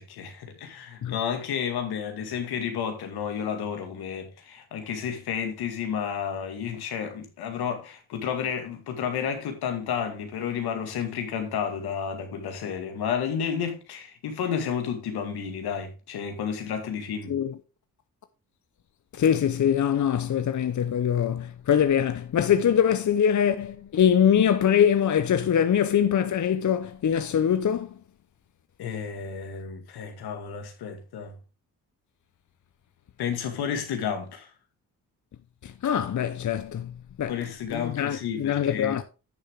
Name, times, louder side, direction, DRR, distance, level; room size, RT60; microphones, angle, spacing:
voice 1, 0.0-17.4 28.8-31.4 33.2-34.5 37.3-39.0, left 7 dB, 80° left, 2.0 m, -31 dB
voice 2, 19.1-27.9 35.6-36.9 37.2-37.3 37.7-39.0, left 8 dB, 50° left, 0.8 m, -23 dB
10.5 x 6.8 x 3.6 m
supercardioid pair, 45°, 37 cm